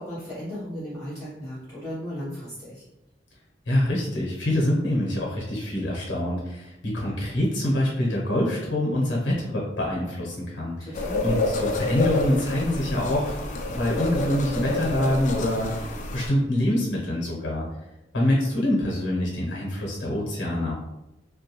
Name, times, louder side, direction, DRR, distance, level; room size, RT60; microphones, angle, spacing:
voice 1, 0.0-2.8 10.8-11.3, equal, ahead, -12 dB, 1.0 m, -36 dB
voice 2, 3.7-10.9 11.2-13.3 13.8-17.7 18.1-20.7, left 1 dB, 75° left, -3 dB, 0.8 m, -25 dB
sound 1, 10.9-16.3, left 2 dB, 40° left, 0.3 m, -29 dB
2.2 x 2.2 x 2.9 m, 0.97 s
head